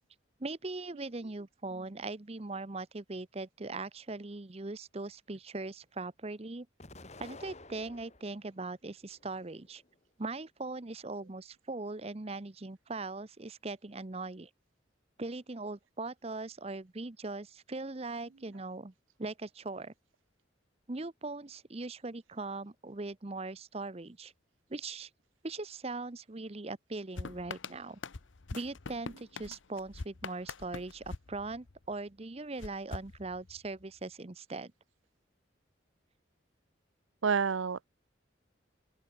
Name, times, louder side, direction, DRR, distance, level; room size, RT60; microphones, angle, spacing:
voice 1, 0.4-6.7 7.2-9.8 10.2-14.5 15.2-18.9 19.2-19.9 20.9-24.3 24.7-25.1 25.4-28.0 28.5-34.7, right 3 dB, 30° right, 0.8 m, -40 dB
Explosion, 6.8-8.4 9.0-9.9, left 2 dB, 35° left, 2.4 m, -52 dB
sound 1, 27.2-32.0 32.6-33.8, left 3 dB, 75° left, 0.9 m, -44 dB
voice 2, 37.2-37.9, right 5 dB, 85° right, 0.6 m, -29 dB
open air
head